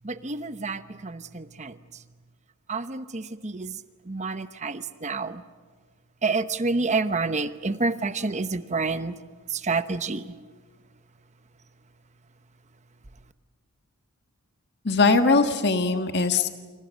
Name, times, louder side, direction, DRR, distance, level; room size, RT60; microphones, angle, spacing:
voice 1, 0.0-1.8 2.7-3.8 4.1-5.4 6.2-9.2 9.5-10.3, right 3 dB, 30° right, 0.9 m, -28 dB
voice 2, 14.8-16.5, left 3 dB, 50° left, 1.5 m, -21 dB
29.0 x 26.5 x 6.4 m
head